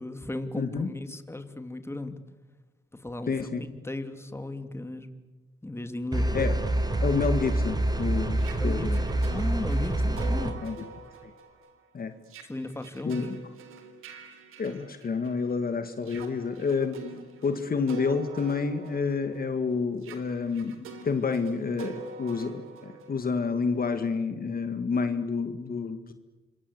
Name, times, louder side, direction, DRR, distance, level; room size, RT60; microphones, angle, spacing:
voice 1, 0.0-2.2 2.9-5.1 5.6-6.3 8.6-8.9 9.3-10.5 12.5-13.3, left 2 dB, 10° left, 8 dB, 2.7 m, -36 dB
voice 2, 0.6-0.9 3.3-3.6 6.3-6.6 7.0-9.0 10.6-10.8 11.2-11.3 11.9-12.2 13.0-13.4 14.6-17.0 17.4-26.1, left 5 dB, 45° left, 8 dB, 2.0 m, -29 dB
sound 1, 6.1-10.5, right 1 dB, 20° right, 4.8 m, -26 dB
sound 2, 6.7-15.5 16.0-23.8, right 5 dB, 85° right, 3.7 m, -46 dB
27.0 x 23.5 x 8.1 m, 1.2 s
cardioid pair, 70°, 21 cm